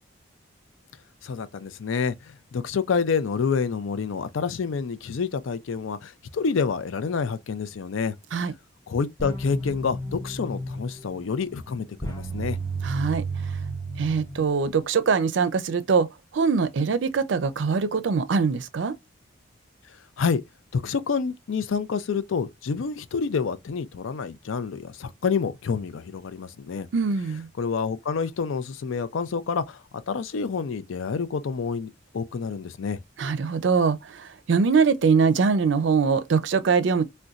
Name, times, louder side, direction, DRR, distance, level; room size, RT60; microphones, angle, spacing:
voice 1, 1.2-8.2 8.9-12.6 20.2-20.4 20.7-26.9 27.6-29.8 30.1-33.0, left 5 dB, 85° left, 0.4 m, -28 dB
sound 1, 9.2-14.8, right 2 dB, 15° left, 0.6 m, -33 dB
voice 2, 12.8-13.6 14.0-16.1 16.3-18.9 26.9-27.5 33.2-37.0, right 5 dB, 70° right, 0.4 m, -23 dB
3.9 x 2.2 x 2.3 m
head